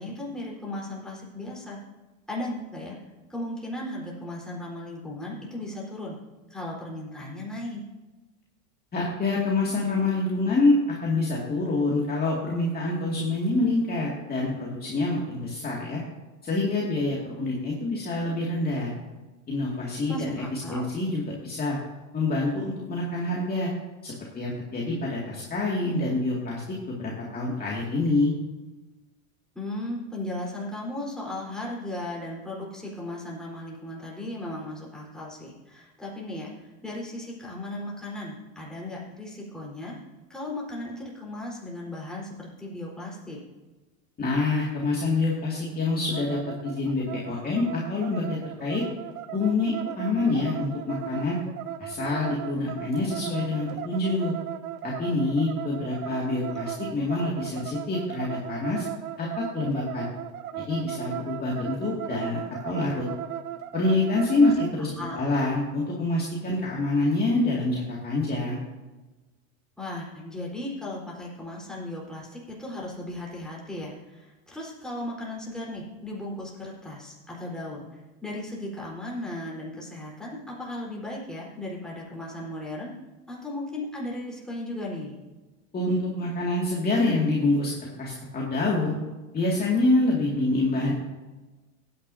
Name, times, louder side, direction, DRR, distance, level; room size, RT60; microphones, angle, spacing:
voice 1, 0.0-1.8 2.3-3.0 3.3-6.2 6.5-7.8 20.1-20.9 29.5-40.0 40.3-43.4 56.5-56.7 64.4-65.3 69.8-82.9 83.3-85.2, left 1 dB, ahead, -5 dB, 4.1 m, -36 dB
voice 2, 8.9-10.7 11.0-16.0 16.4-18.9 19.5-21.8 22.1-23.7 24.0-26.6 26.9-28.3 44.2-48.8 49.3-51.4 51.8-54.3 54.8-58.8 59.2-60.1 60.7-63.1 63.7-68.6 85.7-87.7 88.0-88.9 89.3-90.9, left 2 dB, 20° left, -4 dB, 2.3 m, -26 dB
sound 1, 46.1-64.8, right 11 dB, 85° right, 0.7 m, -37 dB
16.5 x 9.6 x 2.8 m, 1.2 s
hypercardioid pair, 115°, 41 cm